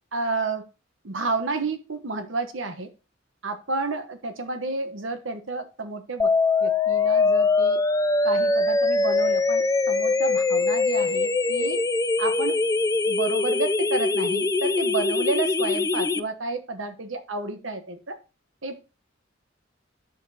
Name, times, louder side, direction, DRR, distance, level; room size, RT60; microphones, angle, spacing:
voice 1, 0.1-0.6 1.0-2.9 3.4-6.3 6.6-7.8 8.2-11.8 12.2-12.6 13.1-18.1 18.6-18.8, right 3 dB, 85° right, 1.1 m, -30 dB
sound 1, 6.2-16.2, left 3 dB, 15° left, 0.4 m, -22 dB
9.0 x 6.7 x 2.8 m
head